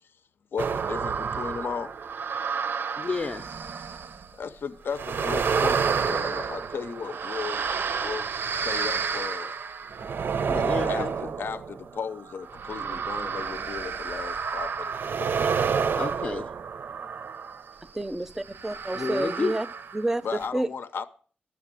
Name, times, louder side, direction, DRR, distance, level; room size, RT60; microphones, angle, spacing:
voice 1, 0.5-1.9 4.3-7.7 8.0-8.3 8.5-9.5 10.9-15.3 20.2-21.0, left 6 dB, 85° left, 0.7 m, -35 dB
sound 1, 0.6-4.3 4.9-17.7 18.5-20.1 20.4-20.5, right 6 dB, 80° right, 0.6 m, -30 dB
voice 2, 3.0-3.4 10.5-11.3 16.0-16.5 18.9-19.5, left 4 dB, 45° left, 0.5 m, -30 dB
voice 3, 17.9-19.7 19.9-20.7, right 2 dB, 15° right, 0.5 m, -29 dB
12.0 x 7.1 x 7.5 m
wide cardioid pair, 170°, 4 cm